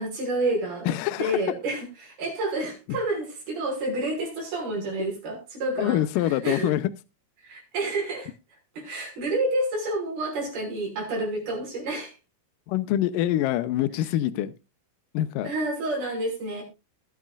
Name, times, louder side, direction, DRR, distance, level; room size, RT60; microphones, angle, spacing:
voice 1, 0.0-6.0 6.4-6.7 7.4-8.3 8.8-12.1 15.4-16.6, right 2 dB, 70° right, 7.8 m, -29 dB
voice 2, 0.9-1.4 2.9-3.0 5.8-6.9 12.7-14.5 15.1-15.5, left 13 dB, 75° left, 2.1 m, -25 dB
21.0 x 8.8 x 2.5 m
omnidirectional pair, 4.6 m